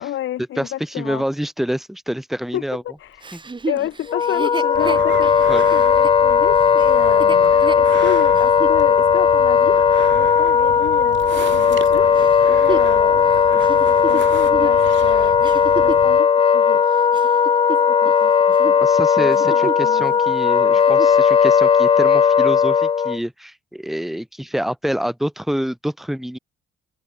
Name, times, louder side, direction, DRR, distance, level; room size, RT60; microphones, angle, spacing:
voice 1, 0.0-1.2 2.5-2.6 3.0-3.4 3.7-12.2 12.5-16.9 17.7-18.3 18.6-18.8 19.2-20.2, left 13 dB, 80° left, 3.5 m, -30 dB
voice 2, 0.6-2.8 3.3-3.4 5.5-5.6 18.8-26.4, equal, ahead, 1.6 m, -26 dB
Chuckle chortle, 3.2-8.8 9.4-9.5 12.2-16.1 16.7-18.2 18.5-18.8 19.2-20.0 20.3-20.4 20.7-21.2 21.9-22.0, right 4 dB, 25° right, 2.1 m, -31 dB
Wind instrument woodwind instrument, 4.1-23.2, left 7 dB, 30° left, 0.4 m, -16 dB
sound 1, 4.7-16.2, right 11 dB, 70° right, 1.4 m, -35 dB
cardioid pair, 90°, 20 cm